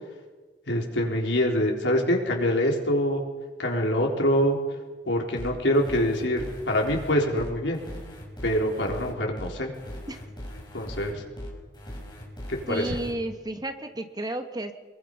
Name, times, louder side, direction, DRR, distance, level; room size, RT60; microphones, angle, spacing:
voice 1, 0.7-3.2 3.6-4.6 5.1-7.8 8.4-9.7 10.7-11.2 12.5-12.9, equal, 85° left, 0 dB, 4.3 m, -25 dB
sound 1, 5.4-13.1, equal, 25° left, 5.4 m, -39 dB
voice 2, 12.7-14.7, right 1 dB, 25° right, 7 dB, 1.4 m, -32 dB
25.0 x 22.5 x 5.7 m, 1.3 s
head